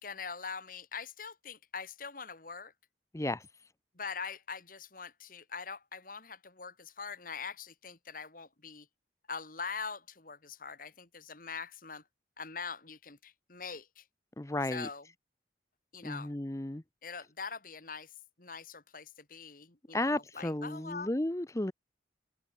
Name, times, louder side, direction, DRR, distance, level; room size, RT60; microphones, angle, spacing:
voice 1, 0.0-2.7 3.9-8.9 9.3-12.0 12.4-14.1 14.6-15.1 15.9-16.4 17.0-21.1, left 5 dB, 50° left, 2.4 m, -43 dB
voice 2, 14.4-14.9 16.0-16.8 19.9-21.7, left 1 dB, 15° left, 0.7 m, -33 dB
head